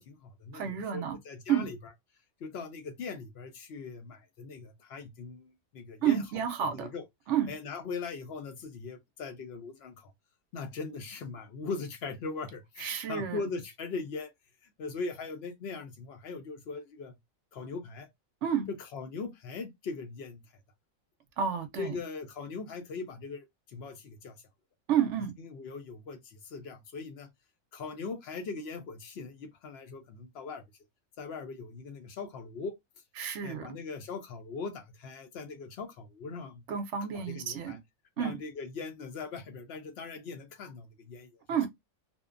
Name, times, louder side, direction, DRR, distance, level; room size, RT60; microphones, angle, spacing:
voice 1, 0.0-1.9 2.4-6.2 6.7-7.0 7.5-10.1 10.5-14.3 14.6-17.1 17.5-18.1 18.7-20.4 21.8-24.4 25.4-27.3 27.7-30.6 31.2-32.8 33.4-36.6 37.1-37.8 38.2-41.3, left 4 dB, 60° left, 0.7 m, -40 dB
voice 2, 0.5-1.2 1.5-1.7 6.0-6.9 7.3-7.5 12.8-13.4 18.4-18.7 21.4-22.0 24.9-25.3 33.2-33.7 36.7-37.8 38.2-38.4 41.5-41.7, right 8 dB, 65° right, 0.8 m, -30 dB
2.7 x 2.1 x 2.4 m
omnidirectional pair, 1.4 m